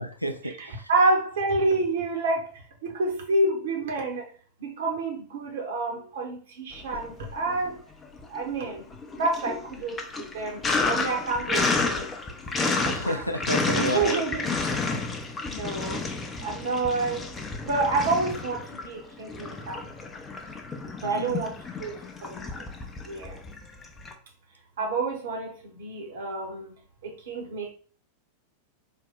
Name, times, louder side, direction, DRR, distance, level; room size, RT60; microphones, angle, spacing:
voice 1, 0.0-0.9 12.9-14.3 21.0-21.5, equal, 90° left, 0.4 m, -31 dB
voice 2, 0.9-2.4 2.8-4.2 4.6-7.7 8.3-8.8 9.2-12.1 12.8-13.2 13.8-14.5 14.8-14.9 15.5-16.0 16.4-17.2 17.6-19.8 21.0-21.5 21.8-22.4 23.1-23.4 24.8-26.7 27.0-27.7, right 3 dB, 60° right, 0.9 m, -28 dB
Sink (filling or washing), 6.8-7.7 8.0-24.1, left 3 dB, 20° left, 0.5 m, -31 dB
3.6 x 2.2 x 3.6 m
figure-of-eight pair, 90°, 0 cm